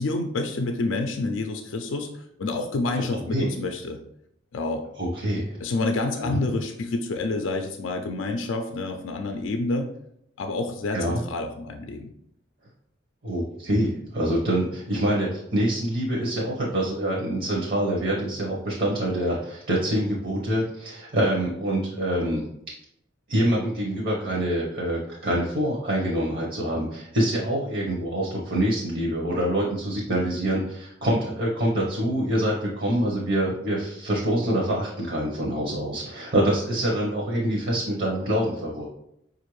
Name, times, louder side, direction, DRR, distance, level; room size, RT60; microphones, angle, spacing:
voice 1, 0.0-4.0 4.5-4.8 5.6-9.9 10.4-12.1, left 2 dB, 75° left, 5 dB, 0.4 m, -28 dB
voice 2, 5.0-5.6 6.2-6.4 10.9-11.2 13.2-22.4 23.3-38.8, right 1 dB, 50° right, -3 dB, 0.8 m, -25 dB
5.0 x 2.5 x 3.1 m, 0.78 s
head